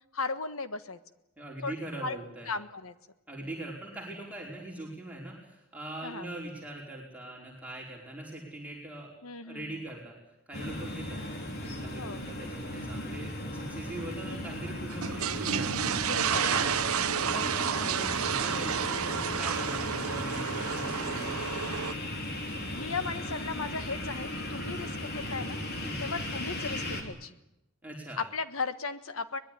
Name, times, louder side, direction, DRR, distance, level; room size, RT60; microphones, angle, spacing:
voice 1, 0.1-1.0 1.6-1.7 2.0-2.2 2.5-2.9 6.0-6.3 9.2-9.8 12.0-12.2 14.3-14.7 16.0-16.4 22.6-25.6 26.0-27.4 28.2-29.4, left 4 dB, 70° left, 11 dB, 1.5 m, -36 dB
voice 2, 1.4-2.5 3.3-9.1 9.4-10.1 10.5-11.2 11.6-16.7 17.2-21.4 25.8-26.0 27.8-28.2, right 1 dB, 5° right, -3 dB, 5.0 m, -41 dB
sound 1, 10.5-27.0, left 1 dB, 45° left, 3.6 m, -37 dB
sound 2, 14.9-21.9, right 7 dB, 75° right, 0.9 m, -30 dB
23.0 x 20.5 x 9.9 m, 0.90 s
head